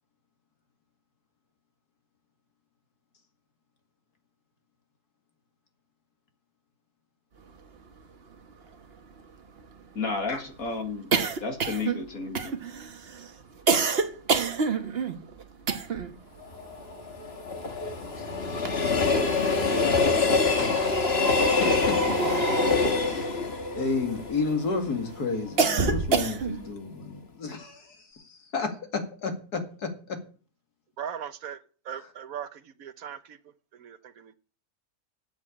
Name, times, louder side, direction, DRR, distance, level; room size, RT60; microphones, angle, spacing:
sound 1, 8.0-8.1 8.3-8.4 8.7-16.2 16.5-18.1 18.4-19.3 20.1-24.6 25.0-26.7, right 5 dB, 45° right, 1.3 m, -29 dB
voice 1, 10.0-11.1 11.4-12.6, left 4 dB, 65° left, 2.4 m, -32 dB
Train, 16.4-25.5 25.9-26.0, left 4 dB, 45° left, 1.7 m, -26 dB
voice 2, 20.5-21.1 21.6-22.8 23.8-30.2, left 4 dB, 90° left, 2.7 m, -32 dB
voice 3, 31.0-33.4 33.7-34.3, right 8 dB, 70° right, 1.3 m, -39 dB
9.2 x 8.0 x 8.5 m
omnidirectional pair, 1.6 m